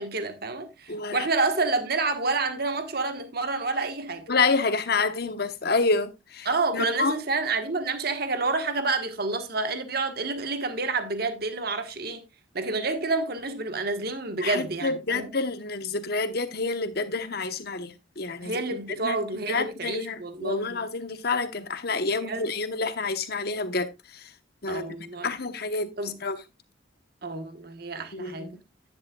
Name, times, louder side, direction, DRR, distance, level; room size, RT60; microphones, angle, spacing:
voice 1, 0.0-4.3 6.4-12.2 12.5-15.3 18.4-20.8 22.1-22.5 24.7-25.3 26.0-26.2 27.2-28.5, right 3 dB, 55° right, 1.4 m, -29 dB
voice 2, 0.9-1.3 4.3-6.5 6.7-7.2 14.4-18.6 19.0-19.2 19.5-23.9 24.6-25.0 25.2-25.9 26.2-26.4 28.1-28.6, left 3 dB, 55° left, 1.1 m, -28 dB
10.5 x 10.5 x 2.3 m
head